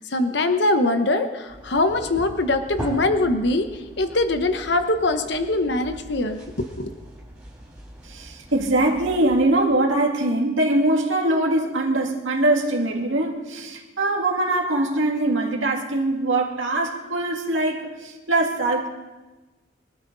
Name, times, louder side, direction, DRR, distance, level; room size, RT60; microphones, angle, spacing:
voice 1, 0.0-6.9, left 2 dB, 60° left, 0.9 m, -23 dB
sound 1, 1.5-9.4, equal, 5° right, 4.2 m, -40 dB
voice 2, 8.0-18.9, right 2 dB, 85° right, 2.2 m, -22 dB
23.5 x 13.0 x 4.0 m
head